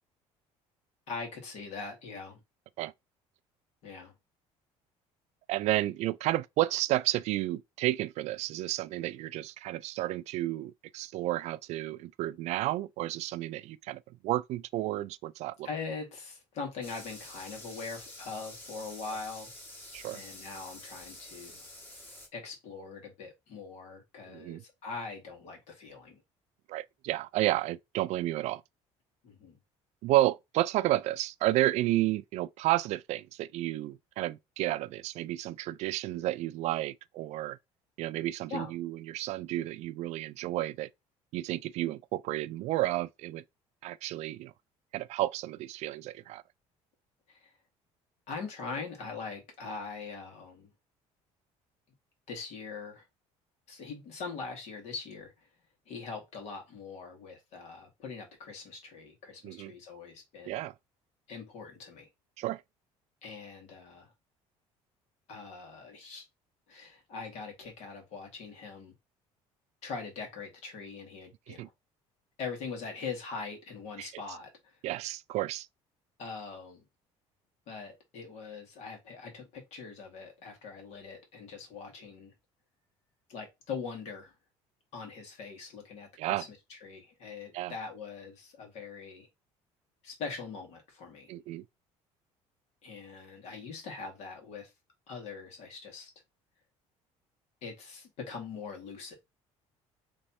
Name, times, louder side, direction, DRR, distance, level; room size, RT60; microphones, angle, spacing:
voice 1, 1.1-2.4 3.8-4.1 15.6-19.5 20.1-21.7 22.3-26.2 29.2-29.6 38.5-38.7 47.3-47.5 48.3-50.7 52.3-53.1 53.7-55.5 55.9-60.6 61.3-62.1 63.2-64.1 65.3-66.2 66.7-68.9 69.8-71.7 72.4-74.8 76.2-76.8 77.7-82.3 83.3-84.3 84.9-89.3 90.0-91.3 92.8-94.7 95.1-96.1 97.6-99.1, left 4 dB, 65° left, 2.1 m, -42 dB
voice 2, 5.5-15.7 19.9-20.2 24.3-24.6 26.7-28.6 30.0-37.6 38.0-40.9 41.3-43.4 43.8-44.5 44.9-46.4 59.4-59.7 60.5-60.7 62.4-62.6 71.5-71.7 74.0-74.1 74.8-75.7 86.2-86.5 87.5-87.7 91.3-91.6, right 16 dB, 65° right, 0.4 m, -31 dB
sound 1, 16.8-22.3, left 1 dB, 15° left, 1.6 m, -48 dB
3.3 x 3.2 x 4.3 m
cardioid pair, 125°, 12 cm